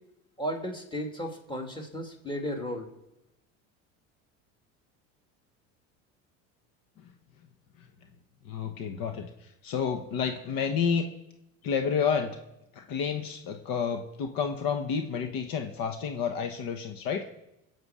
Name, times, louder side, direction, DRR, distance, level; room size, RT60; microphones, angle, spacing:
voice 1, 0.4-2.9, equal, 10° left, 3 dB, 2.5 m, -34 dB
voice 2, 8.4-11.0 11.6-12.4 12.7-17.3, left 6 dB, 60° left, 6 dB, 1.3 m, -30 dB
20.5 x 8.1 x 5.0 m, 0.90 s
supercardioid pair, 90°, 39 cm